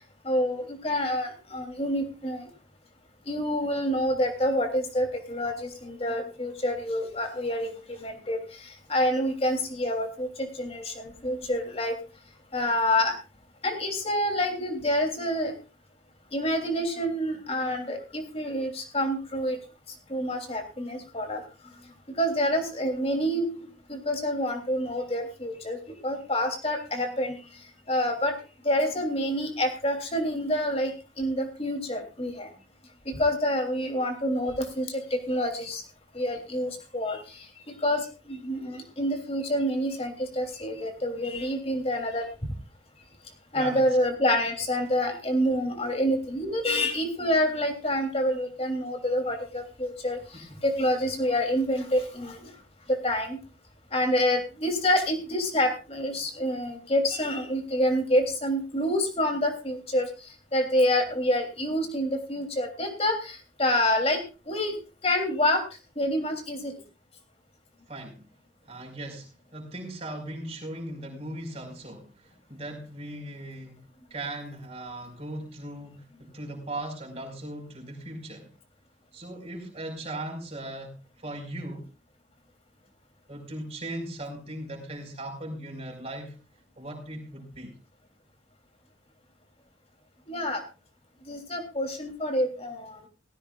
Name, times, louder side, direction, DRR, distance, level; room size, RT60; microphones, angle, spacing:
voice 1, 0.2-2.5 3.3-12.0 12.5-13.1 13.6-15.5 16.3-19.6 20.1-21.4 22.2-25.8 26.0-27.4 27.9-28.3 28.6-30.9 31.2-32.5 33.0-35.8 36.1-37.2 37.7-42.3 43.5-52.5 52.9-53.4 53.9-60.1 60.5-64.2 64.5-64.8 65.0-65.6 66.0-66.7 90.3-90.6 91.3-93.1, left 1 dB, 30° left, 4 dB, 3.2 m, -27 dB
voice 2, 43.5-44.0 50.3-50.6 67.9-68.2 68.7-73.8 74.1-78.5 79.1-81.9 83.3-86.4 86.8-87.8, right 1 dB, 35° right, 2 dB, 5.3 m, -38 dB
18.0 x 15.5 x 2.5 m, 0.31 s
head